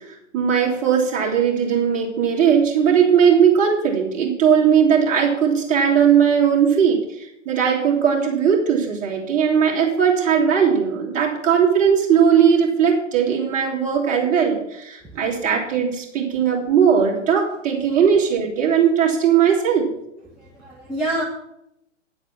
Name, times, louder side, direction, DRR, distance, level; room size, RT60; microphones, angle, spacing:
voice 1, 0.3-19.9, right 7 dB, 20° right, -1 dB, 2.7 m, -18 dB
voice 2, 20.4-21.2, right 1 dB, ahead, -7 dB, 1.7 m, -27 dB
9.8 x 8.0 x 7.3 m, 0.79 s
figure-of-eight pair, 115°, 37 cm